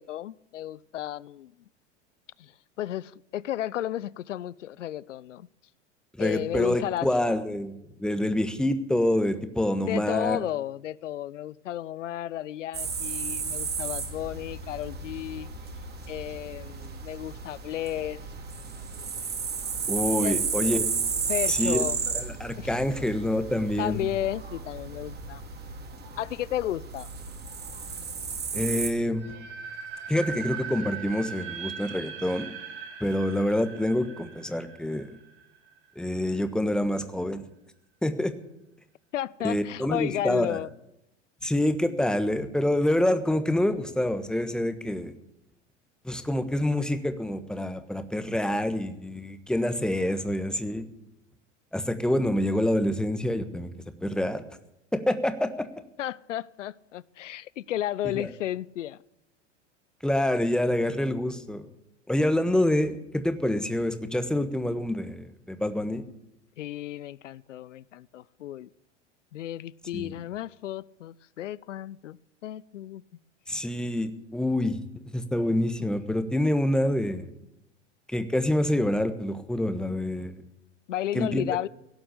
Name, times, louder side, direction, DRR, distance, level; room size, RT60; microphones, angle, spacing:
voice 1, 0.0-1.5 2.4-2.5 2.8-5.5 6.2-7.1 9.8-15.5 16.1-18.2 20.2-20.4 21.3-22.0 22.6-22.8 23.8-25.4 26.2-27.1 39.1-40.7 56.0-59.0 66.6-68.7 69.3-73.0 80.9-81.7, left 12 dB, 80° left, 22 dB, 0.6 m, -33 dB
voice 2, 6.2-7.7 8.0-10.4 19.9-20.8 21.5-21.8 22.1-24.0 28.5-29.2 30.1-32.5 33.0-35.2 36.0-37.4 38.0-38.3 39.4-40.6 41.4-45.1 46.0-50.9 51.7-53.7 54.0-54.4 54.9-55.7 58.1-58.3 60.0-61.6 62.1-66.0 69.9-70.1 73.5-74.8 75.1-77.3 78.1-80.4 81.1-81.4, left 1 dB, ahead, 9 dB, 1.3 m, -27 dB
sound 1, 12.7-28.9, right 5 dB, 25° right, 2.5 m, -33 dB
sound 2, 29.1-36.0, right 7 dB, 70° right, 4.5 m, -40 dB
17.0 x 7.7 x 10.0 m, 0.83 s
hypercardioid pair, 90°, 36 cm